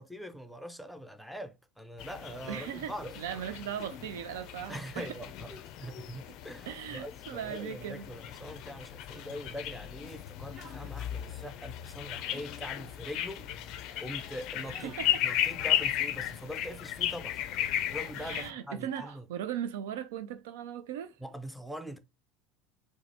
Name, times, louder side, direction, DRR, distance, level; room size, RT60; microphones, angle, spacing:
voice 1, 0.0-3.6 4.7-13.5 13.7-19.3 21.2-22.0, equal, ahead, 0.6 m, -43 dB
sound 1, 2.0-18.5, left 12 dB, 55° left, 0.4 m, -35 dB
voice 2, 2.5-5.1 6.7-8.1 14.8-15.2 18.2-21.2, right 9 dB, 65° right, 0.4 m, -38 dB
sound 2, 3.0-3.3 3.8-4.0 4.3-4.9 5.5-5.7 6.3-6.8 7.4-7.7 8.3-8.8 9.1-9.4 10.5-11.6 12.1-12.6 13.3-13.5 13.9-14.1 14.6-15.9 16.1-16.4 17.3-17.6 17.8-18.6 18.9-19.2, right 1 dB, 30° right, 1.5 m, -53 dB
4.7 x 2.0 x 3.3 m
figure-of-eight pair, 70°, 0 cm